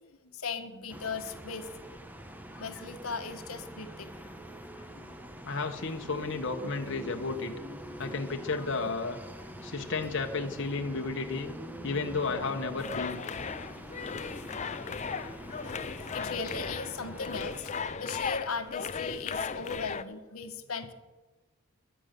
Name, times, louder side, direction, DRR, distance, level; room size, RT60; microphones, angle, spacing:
voice 1, 0.3-1.7 2.5-4.4 4.7-5.1 8.5-8.6 11.9-12.0 12.5-12.6 13.0-13.1 13.5-13.6 14.0-14.2 14.7-20.9, left 4 dB, 75° left, 7 dB, 1.3 m, -39 dB
sound 1, 0.9-17.6, equal, 10° right, 1.1 m, -44 dB
voice 2, 5.4-7.5 8.0-9.2 9.6-11.5 11.8-13.2, left 4 dB, 55° left, 3 dB, 1.2 m, -32 dB
sound 2, 12.8-20.0, left 6 dB, 35° left, 0.5 m, -37 dB
22.5 x 9.2 x 6.8 m, 1.2 s
head